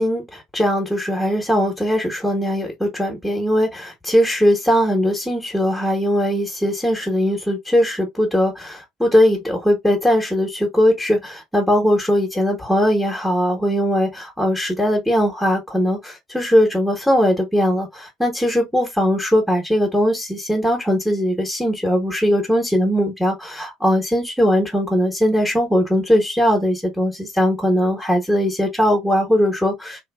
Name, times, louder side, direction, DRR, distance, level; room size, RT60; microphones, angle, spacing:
voice 1, 0.0-30.0, equal, 5° left, 1.0 m, -19 dB
2.7 x 2.7 x 2.2 m
hypercardioid pair, 65°, 0 cm